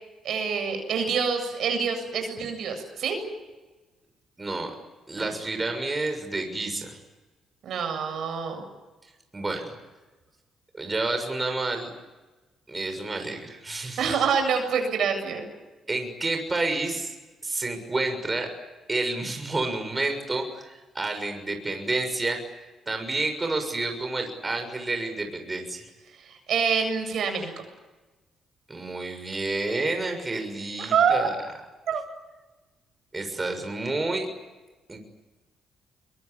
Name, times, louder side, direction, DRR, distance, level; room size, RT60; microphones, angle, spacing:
voice 1, 0.2-3.2 5.2-5.3 7.6-8.6 14.0-15.5 26.2-27.5 30.8-31.3 31.9-32.0, right 6 dB, 70° right, 6 dB, 7.6 m, -26 dB
voice 2, 4.4-4.7 5.1-7.0 9.3-9.7 10.7-11.9 12.7-14.1 15.9-17.1 17.4-18.5 18.9-22.4 22.9-25.9 28.7-31.3 33.1-34.3 34.9-35.0, right 2 dB, 20° right, 5 dB, 6.7 m, -29 dB
25.5 x 24.0 x 9.8 m, 1.2 s
cardioid pair, 90°, 0 cm